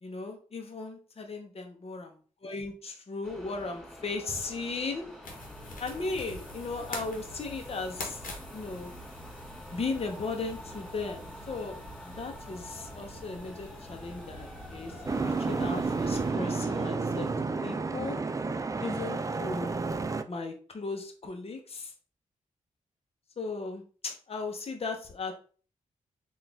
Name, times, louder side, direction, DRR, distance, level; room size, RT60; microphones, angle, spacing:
voice 1, 0.0-2.1 2.4-5.0 5.8-8.2 8.5-8.9 9.7-11.8 12.0-17.3 17.6-18.2 18.8-19.9 20.3-21.9 23.4-25.3, left 3 dB, 45° left, 3 dB, 0.8 m, -36 dB
sound 1, 3.2-16.9, equal, 5° left, 1.4 m, -48 dB
sound 2, 5.2-16.3, left 1 dB, 85° left, 1.0 m, -45 dB
Boat Water vehicle, 15.1-20.2, right 4 dB, 25° right, 0.4 m, -31 dB
3.9 x 2.5 x 3.4 m, 0.40 s
cardioid pair, 60°, 14 cm